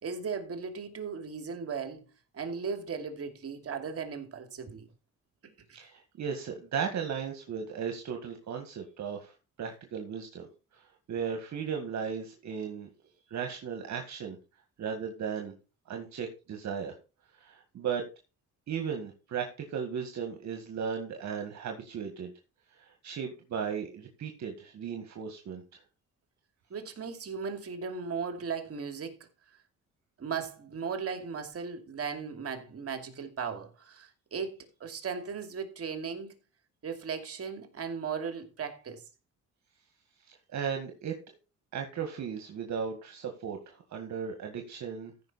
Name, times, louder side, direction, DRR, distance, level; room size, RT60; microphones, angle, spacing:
voice 1, 0.0-4.9 5.7-5.8 26.7-29.2 30.2-36.3 36.8-39.0, right 6 dB, 50° right, 2.6 m, -37 dB
voice 2, 5.7-9.3 9.6-12.9 13.3-14.4 14.8-15.5 15.9-17.0 17.4-18.0 18.7-22.3 22.7-25.8 40.3-41.2 41.7-45.1, right 7 dB, 65° right, 1.9 m, -36 dB
14.5 x 5.7 x 4.2 m
cardioid pair, 90°, 30 cm